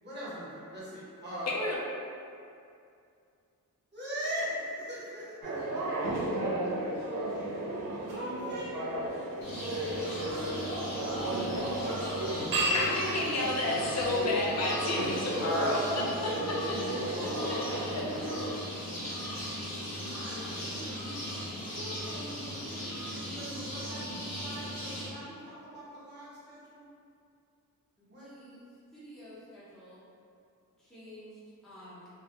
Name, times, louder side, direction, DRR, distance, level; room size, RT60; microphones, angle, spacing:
voice 1, 0.0-1.5 3.9-6.8 7.7-8.8 9.2-9.4 12.5-13.7 16.3-17.4 17.6-18.6 20.1-26.9 28.1-28.5, equal, 30° right, -9 dB, 0.9 m, -42 dB
voice 2, 1.5-1.8 12.3-12.4 12.7-16.7 17.9-18.0, left 2 dB, 45° left, -4 dB, 0.5 m, -31 dB
sound 1, 5.4-18.5, right 1 dB, 65° right, 0.5 m, -34 dB
sound 2, 9.4-25.1, equal, 65° left, 0.8 m, -38 dB
voice 3, 28.0-28.6 28.9-30.1 30.8-32.2, equal, ahead, -11 dB, 0.6 m, -51 dB
2.1 x 2.0 x 2.8 m, 2.5 s
cardioid pair, 90°, 36 cm